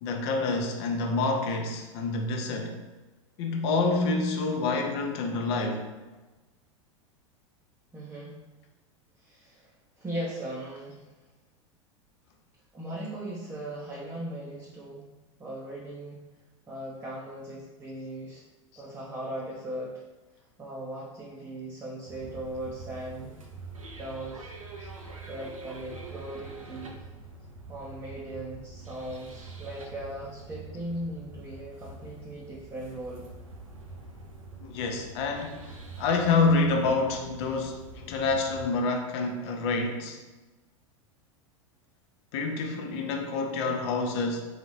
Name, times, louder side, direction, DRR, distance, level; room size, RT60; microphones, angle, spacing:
voice 1, 0.0-2.8 3.4-5.9 34.6-40.2 42.3-44.5, left 3 dB, 55° left, 4 dB, 0.7 m, -27 dB
voice 2, 7.9-8.4 9.2-11.1 12.7-15.1 15.4-16.2 16.7-18.4 18.8-20.0 20.3-23.4 24.0-24.5 25.0-27.0 27.7-33.3, right 1 dB, 10° right, -5 dB, 0.6 m, -38 dB
sound 1, 22.1-38.7, right 3 dB, 90° right, 0.6 m, -45 dB
4.0 x 2.7 x 3.2 m, 1.2 s
hypercardioid pair, 90°, 17 cm